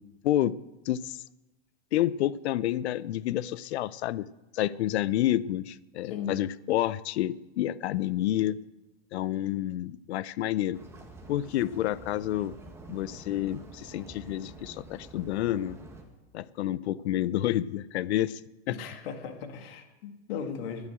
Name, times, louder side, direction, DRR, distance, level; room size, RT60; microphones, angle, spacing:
voice 1, 0.2-0.5 0.9-1.2 1.9-4.3 4.5-8.6 9.1-10.8 11.3-12.5 12.9-15.8 16.3-18.4 18.7-18.8, left 13 dB, 75° left, 20 dB, 0.7 m, -29 dB
voice 2, 6.0-6.4 18.7-20.9, left 6 dB, 60° left, 6 dB, 2.1 m, -37 dB
sound 1, 10.7-16.0, right 2 dB, 10° right, 1.6 m, -48 dB
11.0 x 9.8 x 7.8 m, 1.0 s
supercardioid pair, 145°, 33 cm